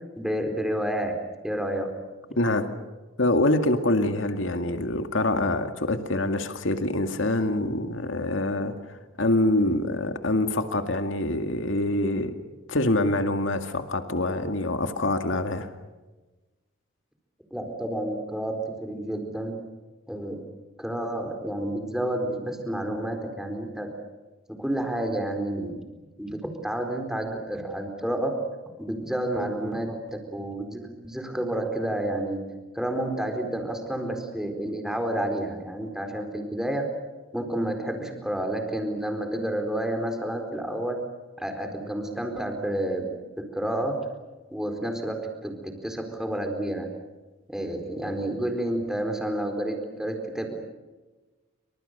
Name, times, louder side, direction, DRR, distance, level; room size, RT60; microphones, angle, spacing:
voice 1, 0.2-1.2 1.4-1.9 2.3-2.4 17.5-19.6 20.1-20.4 20.8-23.9 24.5-25.8 26.2-28.4 28.8-32.4 32.7-36.9 37.3-41.0 41.4-43.1 43.4-44.0 44.5-46.9 47.5-50.6, right 1 dB, 5° right, 4 dB, 4.3 m, -30 dB
voice 2, 2.4-2.7 3.2-8.7 9.2-12.3 12.7-15.7, left 1 dB, 75° left, 7 dB, 2.1 m, -25 dB
29.5 x 26.0 x 6.8 m, 1.2 s
head